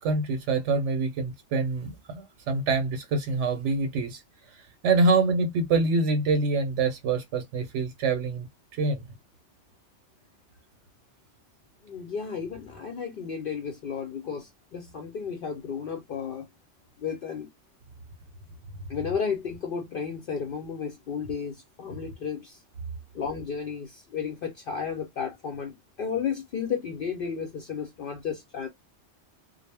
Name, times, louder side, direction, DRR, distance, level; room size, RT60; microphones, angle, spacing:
voice 1, 0.0-4.2 4.5-8.5 8.7-9.1, right 3 dB, 85° right, 0.9 m, -26 dB
voice 2, 11.8-16.5 17.0-17.5 18.9-22.6 23.1-28.7, left 6 dB, 60° left, 0.6 m, -33 dB
2.0 x 2.0 x 3.2 m
omnidirectional pair, 1.2 m